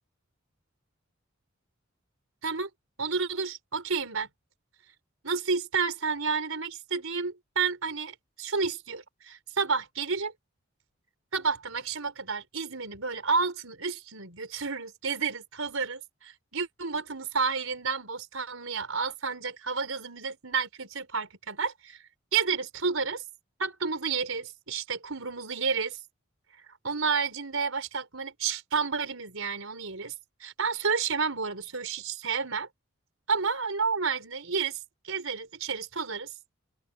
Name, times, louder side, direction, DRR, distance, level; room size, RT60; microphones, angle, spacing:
voice 1, 3.0-4.3 5.2-10.3 11.3-22.0 22.3-23.2 23.6-26.0 26.8-30.1 30.4-32.7 33.3-34.8 35.0-36.3, right 5 dB, 85° right, 4.6 m, -30 dB
open air
head